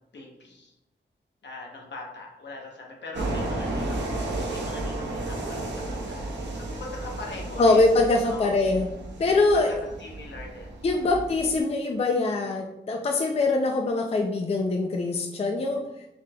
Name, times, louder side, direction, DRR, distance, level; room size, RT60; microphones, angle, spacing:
voice 1, 0.1-0.7 1.4-7.8 8.2-8.5 9.3-11.1, left 2 dB, 70° left, -1 dB, 0.9 m, -42 dB
sound 1, 3.1-11.6, right 2 dB, 70° right, 0.7 m, -33 dB
voice 2, 7.6-8.9 9.2-9.7 10.8-15.8, left 2 dB, 35° left, 2 dB, 0.4 m, -23 dB
4.9 x 3.2 x 2.2 m, 0.89 s
wide cardioid pair, 130°, 19 cm